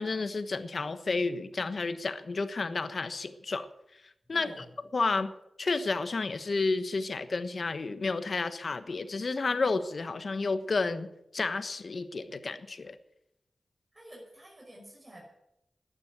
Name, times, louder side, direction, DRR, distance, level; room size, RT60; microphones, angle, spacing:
voice 1, 0.0-3.7 4.3-4.5 4.9-5.3 5.6-12.9, left 3 dB, 60° left, 11 dB, 1.3 m, -31 dB
voice 2, 4.3-4.7 13.9-15.2, equal, 25° right, -3 dB, 5.9 m, -49 dB
11.5 x 10.5 x 9.3 m, 0.82 s
cardioid pair, 45°, 0 cm